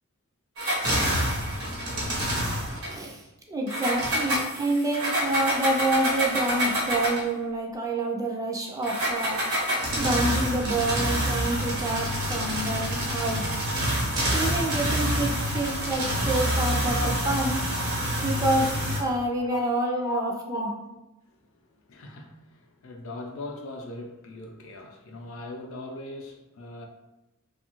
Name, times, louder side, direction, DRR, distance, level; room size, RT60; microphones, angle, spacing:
sound 1, 0.6-2.9 3.7-7.3 8.8-19.0, equal, 80° right, 1.0 m, -27 dB
voice 1, 2.9-3.2 3.5-9.7 10.0-13.5 14.3-17.0 17.3-17.6 18.2-20.7, right 2 dB, 15° right, 0 dB, 0.3 m, -28 dB
voice 2, 16.7-17.3 19.5-21.0 21.4-26.9, left 3 dB, 65° left, 2 dB, 0.5 m, -38 dB
2.7 x 2.3 x 2.9 m, 0.96 s
head